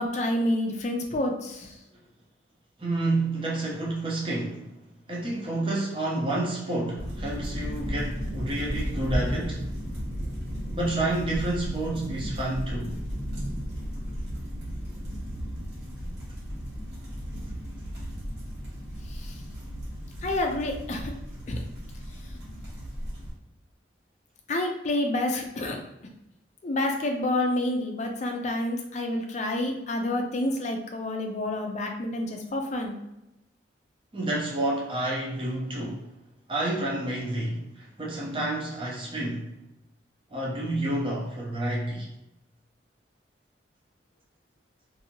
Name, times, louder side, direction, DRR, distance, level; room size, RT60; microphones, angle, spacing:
voice 1, 0.0-1.7 19.1-19.3 20.2-21.1 21.5-21.6 24.5-25.8 26.6-32.9, left 1 dB, 40° left, 3 dB, 0.4 m, -28 dB
voice 2, 2.8-4.7 5.1-9.6 10.7-12.9 34.1-36.0 36.5-39.5 40.3-42.1, right 2 dB, 30° right, -3 dB, 0.7 m, -29 dB
sound 1, 7.0-23.3, equal, 65° right, 1.3 m, -34 dB
2.7 x 2.6 x 2.8 m, 0.90 s
head